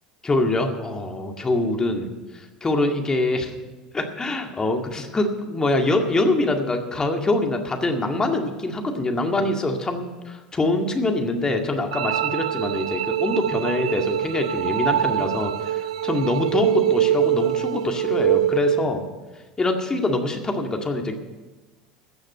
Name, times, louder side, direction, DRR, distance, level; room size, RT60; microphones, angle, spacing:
voice 1, 0.2-2.1 2.3-3.5 3.9-19.0 19.6-21.2, left 2 dB, 20° left, 4 dB, 2.0 m, -24 dB
sound 1, 11.9-18.9, right 12 dB, 75° right, 0.4 m, -24 dB
15.5 x 6.3 x 9.0 m, 1.2 s
hypercardioid pair, 80°, 3 cm